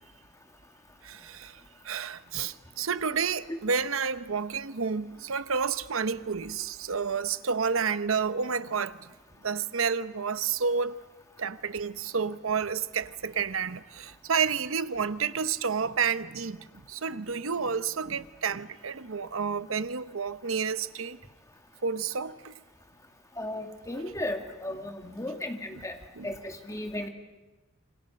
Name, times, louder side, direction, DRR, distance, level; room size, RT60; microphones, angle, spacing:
voice 1, 1.0-9.0 9.4-10.9 11.4-21.2 21.8-22.5 25.7-25.8 26.2-26.3, right 6 dB, 75° right, 0.9 m, -30 dB
voice 2, 23.4-26.0 26.2-27.1, left 1 dB, 15° left, 2.2 m, -35 dB
27.5 x 26.0 x 6.5 m
head